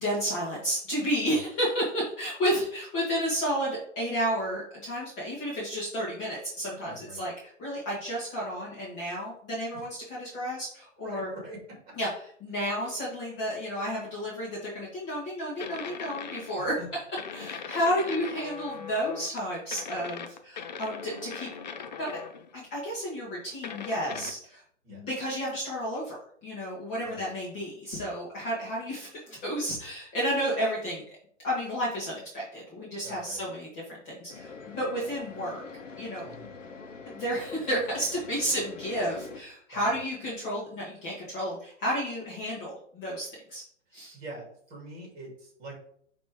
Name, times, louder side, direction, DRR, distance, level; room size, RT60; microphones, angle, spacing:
voice 1, 0.0-7.3 7.6-11.3 12.0-12.1 12.4-16.8 17.3-21.5 22.0-22.2 22.5-24.6 24.9-31.0 31.4-35.6 36.0-36.3 37.0-43.6 43.9-44.2, equal, 20° left, -6 dB, 1.5 m, -31 dB
voice 2, 6.8-7.2 9.7-9.9 11.0-11.8 16.6-16.9 24.1-24.2 24.8-25.0 27.0-27.2 33.0-33.4 36.2-36.5 39.7-40.0 44.1-45.7, right 1 dB, 20° right, -2 dB, 3.0 m, -44 dB
sound 1, 15.6-16.7 17.2-19.4 19.7-22.5 23.6-24.3, left 6 dB, 35° left, 0.5 m, -40 dB
sound 2, 34.3-39.4, left 4 dB, 75° left, 1.3 m, -44 dB
9.4 x 3.2 x 3.7 m, 0.62 s
hypercardioid pair, 155°, 37 cm